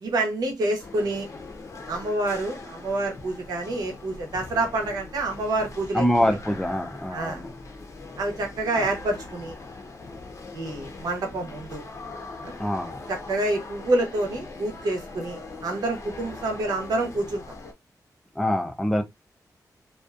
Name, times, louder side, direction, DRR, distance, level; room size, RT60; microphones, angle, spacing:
voice 1, 0.0-1.3 1.9-6.0 7.1-7.4 8.2-9.5 10.5-11.8 12.4-12.6 13.1-17.4, right 2 dB, 80° right, 0.8 m, -27 dB
sound 1, 0.8-17.7, left 3 dB, 50° left, 0.6 m, -41 dB
voice 2, 5.9-7.5 8.8-8.9 12.6-13.0 18.4-19.0, equal, 5° left, 0.4 m, -25 dB
2.5 x 2.3 x 2.4 m
wide cardioid pair, 120°, 7 cm